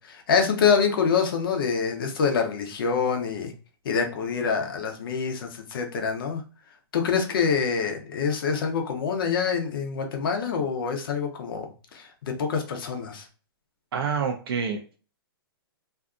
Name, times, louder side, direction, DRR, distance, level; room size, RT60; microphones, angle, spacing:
voice 1, 0.1-3.5 3.8-6.4 6.9-11.7 11.9-13.2, left 6 dB, 65° left, 4 dB, 0.7 m, -26 dB
voice 2, 13.9-14.9, right 6 dB, 70° right, 2 dB, 0.5 m, -28 dB
2.6 x 2.3 x 2.3 m, 0.36 s
hypercardioid pair, 135°, 13 cm